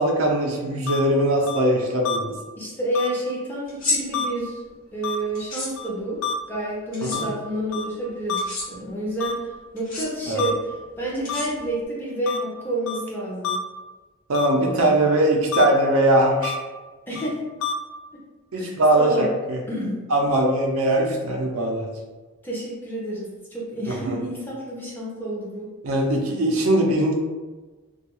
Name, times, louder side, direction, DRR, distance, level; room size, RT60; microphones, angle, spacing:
voice 1, 0.0-2.3 7.0-7.3 10.3-10.5 14.3-16.6 18.5-19.6 20.1-21.9 23.9-24.2 25.8-27.1, right 1 dB, 75° right, 0 dB, 0.5 m, -21 dB
sound 1, 0.9-1.0 1.5-1.6 2.0-2.2 2.9-3.1 4.1-4.3 5.0-5.2 5.8-5.9 6.2-6.3 7.1-7.2 7.7-7.8 8.3-8.4 9.2-9.3 10.4-10.5 11.3-11.4 12.3-12.4 12.9-13.0 13.4-13.6 14.3-14.5 15.5-15.6 16.4-16.6 17.2-17.3 17.6-17.7, left 7 dB, 70° left, 0.3 m, -27 dB
voice 2, 2.6-4.6 4.9-6.2 6.5-9.5 9.7-10.5 11.0-13.6 14.6-15.0 17.1-17.4 18.6-19.3 19.7-20.0 22.4-25.7, right 1 dB, 10° left, -5 dB, 0.5 m, -29 dB
sound 2, 3.7-4.0 5.3-5.7 6.9-7.2 8.4-8.7 9.8-10.1 11.2-11.8, left 3 dB, 40° left, 0.8 m, -28 dB
2.3 x 2.3 x 2.9 m, 1.3 s
head